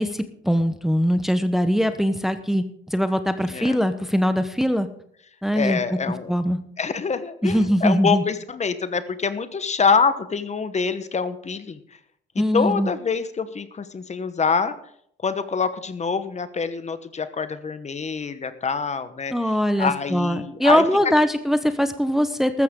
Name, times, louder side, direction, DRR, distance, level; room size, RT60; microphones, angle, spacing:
voice 1, 0.0-4.9 5.4-5.8 6.3-6.6 7.4-8.2 12.4-12.9 19.3-22.6, equal, ahead, 9 dB, 0.9 m, -21 dB
voice 2, 3.4-3.8 5.5-6.3 6.8-11.8 12.3-14.7 15.2-19.3 19.8-20.8, left 5 dB, 35° left, 12 dB, 1.1 m, -25 dB
14.0 x 13.5 x 3.7 m, 0.67 s
cardioid pair, 90°, 20 cm